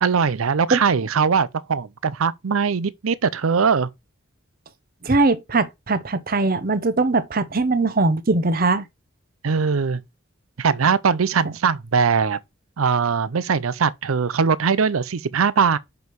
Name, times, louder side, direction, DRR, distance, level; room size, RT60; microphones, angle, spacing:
voice 1, 0.0-3.9 9.4-10.0 10.6-12.4 12.8-15.8, right 6 dB, 85° right, 0.6 m, -21 dB
voice 2, 5.0-8.9, right 3 dB, 45° right, 0.8 m, -20 dB
6.1 x 5.3 x 4.7 m
head